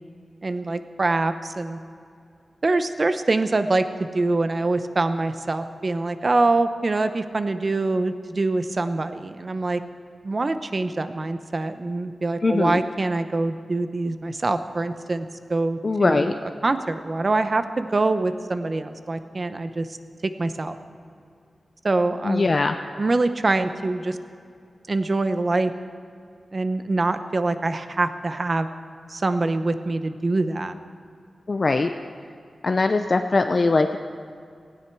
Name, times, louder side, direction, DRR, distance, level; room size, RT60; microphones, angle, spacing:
voice 1, 0.4-1.8 2.6-3.8 4.1-9.8 10.2-16.4 16.6-19.9 20.4-20.8 21.8-22.5 23.0-24.2 24.9-25.7 26.5-28.7 29.1-30.8, right 2 dB, 40° right, 10 dB, 0.8 m, -24 dB
voice 2, 12.4-12.8 15.8-16.3 22.2-22.8 31.5-31.9 32.6-34.0, left 3 dB, 40° left, 6 dB, 0.5 m, -21 dB
18.0 x 16.5 x 4.7 m, 2.3 s
wide cardioid pair, 120°, 0 cm